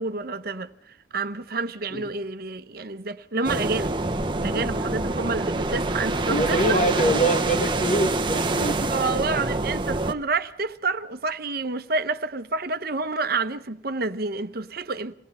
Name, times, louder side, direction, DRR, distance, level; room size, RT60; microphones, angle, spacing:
voice 1, 0.0-3.9 4.4-6.8 8.9-15.1, right 3 dB, 55° right, 1.0 m, -29 dB
sound 1, 3.4-10.1, right 2 dB, 25° right, 1.0 m, -26 dB
Wind, 4.1-10.7, left 1 dB, 80° left, 2.6 m, -47 dB
voice 2, 6.3-8.9, right 1 dB, 40° left, 1.3 m, -24 dB
26.5 x 18.5 x 5.6 m
head